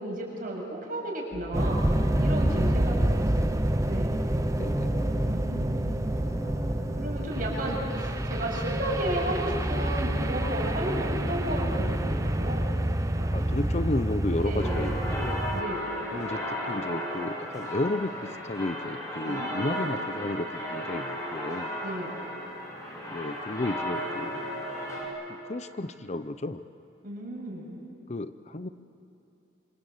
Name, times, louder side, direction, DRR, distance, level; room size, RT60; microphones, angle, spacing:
voice 1, 0.0-3.5 3.8-4.3 5.2-6.0 7.0-12.7 13.2-13.4 14.4-15.0 15.5-16.0 19.2-19.9 21.8-22.2 27.0-27.8, right 1 dB, 50° right, -2 dB, 7.2 m, -34 dB
sound 1, 1.3-15.4, equal, 60° left, 7.9 m, -39 dB
sound 2, 1.5-15.6, right 1 dB, 15° right, 0.9 m, -28 dB
voice 2, 4.6-5.1 13.3-15.4 16.1-16.4 16.7-18.1 18.5-21.7 23.1-24.5 25.5-26.6 28.1-28.7, left 2 dB, 35° left, 11 dB, 0.7 m, -32 dB
sound 3, 14.6-25.0, equal, 15° left, 6.0 m, -34 dB
27.0 x 26.0 x 8.0 m, 3.0 s
head